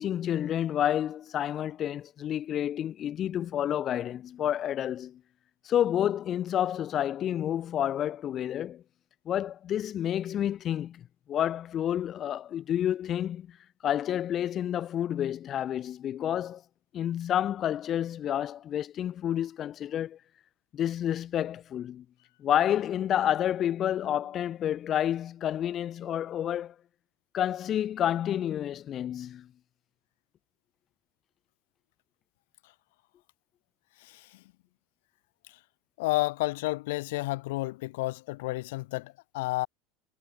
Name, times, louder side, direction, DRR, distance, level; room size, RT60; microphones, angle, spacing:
voice 1, 0.0-5.2 5.6-8.8 9.2-13.6 13.8-16.6 16.9-20.2 20.7-22.0 22.4-26.7 27.3-29.5, left 10 dB, 35° left, 2.8 m, -29 dB
voice 2, 36.0-39.7, left 20 dB, 80° left, 2.7 m, -31 dB
supercardioid pair, 140°, 0 cm